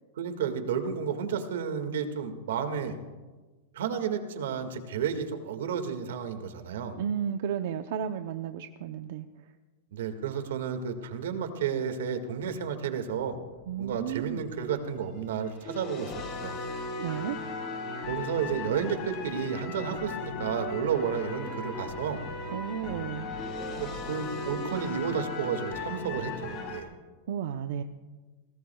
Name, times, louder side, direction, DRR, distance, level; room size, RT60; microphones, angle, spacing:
voice 1, 0.2-3.0 3.7-7.0 9.9-13.4 13.8-16.1 16.4-16.6 18.1-22.2 23.8-26.9, right 7 dB, 85° right, 7 dB, 1.9 m, -32 dB
voice 2, 7.0-9.3 13.7-14.4 17.0-17.4 22.5-23.3 27.3-27.8, right 9 dB, 65° right, 7 dB, 0.7 m, -33 dB
sound 1, 13.3-14.4 15.2-26.8, left 3 dB, 30° left, 3.4 m, -37 dB
29.0 x 19.0 x 2.4 m, 1.3 s
supercardioid pair, 160°, 0 cm